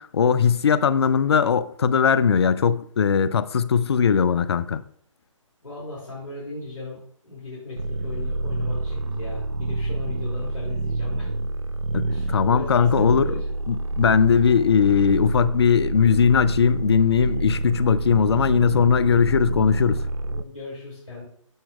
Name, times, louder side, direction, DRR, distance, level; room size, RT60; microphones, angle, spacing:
voice 1, 0.0-4.8 11.9-13.3 13.7-20.0, left 7 dB, 50° left, 0.4 m, -19 dB
voice 2, 5.6-11.3 12.1-13.5 20.2-21.2, left 2 dB, 80° left, 2.6 m, -37 dB
sound 1, 7.8-20.4, right 2 dB, 85° right, 0.4 m, -27 dB
12.0 x 4.3 x 2.3 m
figure-of-eight pair, 135°, 17 cm